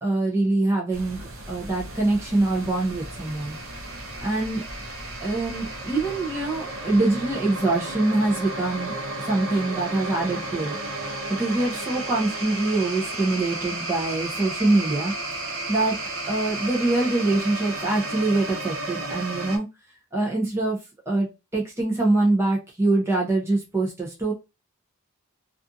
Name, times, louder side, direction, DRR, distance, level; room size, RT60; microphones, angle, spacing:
voice 1, 0.0-3.6 4.2-4.7 5.2-10.8 11.0-15.1 15.7-16.0 16.3-19.7 20.1-20.8 21.1-24.3, right 2 dB, 10° right, -3 dB, 0.6 m, -24 dB
sound 1, 0.9-19.6, right 2 dB, 70° right, 0.6 m, -33 dB
2.5 x 2.4 x 2.5 m, 0.26 s
head